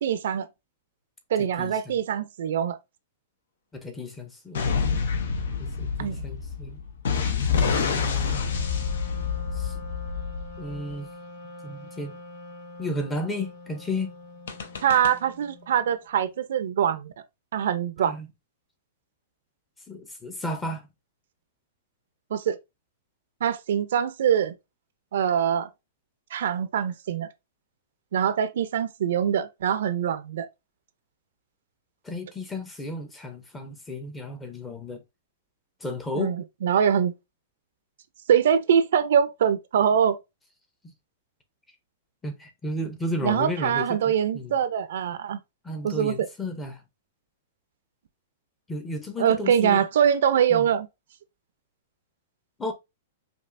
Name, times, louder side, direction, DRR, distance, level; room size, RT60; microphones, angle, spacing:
voice 1, 0.0-0.5 1.3-2.8 6.0-6.2 14.8-17.1 17.5-18.2 22.3-22.6 23.4-24.5 25.1-25.7 26.3-27.3 28.1-30.5 36.1-37.1 38.3-40.2 43.2-45.4 45.8-46.3 49.2-50.9, right 8 dB, 70° right, 0.5 m, -23 dB
voice 2, 1.4-2.0 3.7-4.8 5.6-6.8 7.6-8.4 9.6-9.7 10.6-11.1 11.6-12.1 12.8-14.1 18.1-18.3 19.9-20.9 32.0-35.0 35.8-36.3 42.2-44.5 45.6-46.8 48.7-49.8 50.5-50.7 52.6-52.7, left 1 dB, 10° left, 0.6 m, -33 dB
sound 1, 4.6-10.9 14.5-15.1, left 6 dB, 80° left, 0.7 m, -27 dB
Wind instrument woodwind instrument, 8.1-15.9, left 2 dB, 50° left, 1.1 m, -44 dB
5.2 x 2.4 x 2.5 m
hypercardioid pair, 160°, 0 cm